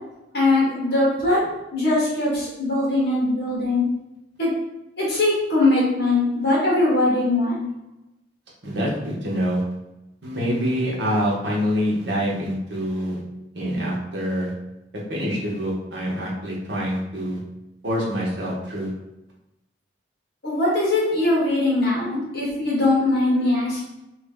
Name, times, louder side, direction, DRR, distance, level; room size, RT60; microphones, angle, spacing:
voice 1, 0.3-1.4 1.7-3.9 4.4-4.5 5.0-7.7 20.4-23.8, left 2 dB, 60° left, -5 dB, 1.4 m, -21 dB
voice 2, 8.6-9.6 10.2-13.2 13.5-14.5 15.1-17.4 17.8-18.9, equal, 75° right, -4 dB, 1.0 m, -25 dB
3.1 x 2.5 x 3.6 m, 0.94 s
head